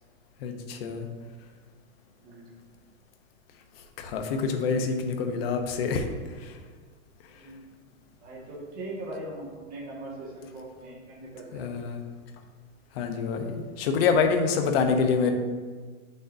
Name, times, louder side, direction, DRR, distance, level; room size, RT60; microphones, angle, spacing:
voice 1, 0.4-1.1 4.0-6.1 6.4-6.6 11.5-12.0 12.9-15.3, left 5 dB, 45° left, 5 dB, 0.8 m, -26 dB
voice 2, 7.3-7.7 8.2-11.7, right 1 dB, 20° right, -5 dB, 1.6 m, -40 dB
8.1 x 6.4 x 2.6 m, 1.5 s
supercardioid pair, 165°, 42 cm